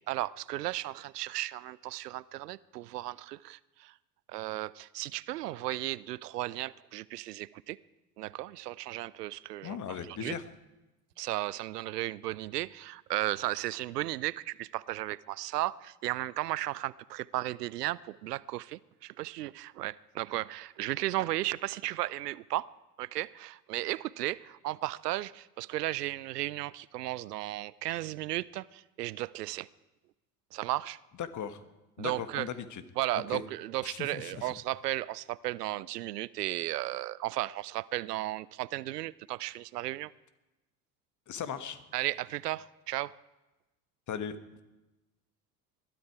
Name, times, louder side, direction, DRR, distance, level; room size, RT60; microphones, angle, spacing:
voice 1, 0.0-3.9 4.3-7.8 8.2-9.8 10.1-10.3 11.2-22.7 23.0-29.7 30.5-31.0 32.0-32.5 33.0-40.1 41.9-43.1, right 16 dB, 85° right, 21 dB, 0.5 m, -35 dB
voice 2, 9.6-10.4 31.2-31.6 32.0-32.8 33.1-33.4 33.8-34.5 41.3-41.8 44.1-44.4, left 8 dB, 40° left, 11 dB, 1.4 m, -38 dB
20.5 x 13.0 x 4.8 m, 1.0 s
hypercardioid pair, 65°, 47 cm